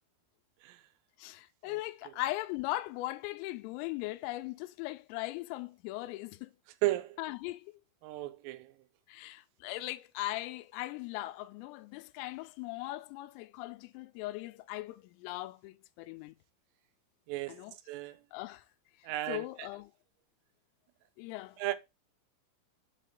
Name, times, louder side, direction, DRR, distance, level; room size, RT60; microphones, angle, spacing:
voice 1, 1.2-6.5 7.2-7.8 9.1-16.4 17.5-17.8 18.3-18.6 19.3-19.9 21.2-21.6, left 17 dB, 85° left, 3.2 m, -39 dB
voice 2, 6.8-7.1 8.0-8.6 17.3-17.5 17.9-18.1 19.1-19.4 21.6-21.8, right 17 dB, 85° right, 3.3 m, -33 dB
7.4 x 4.2 x 3.7 m
omnidirectional pair, 5.9 m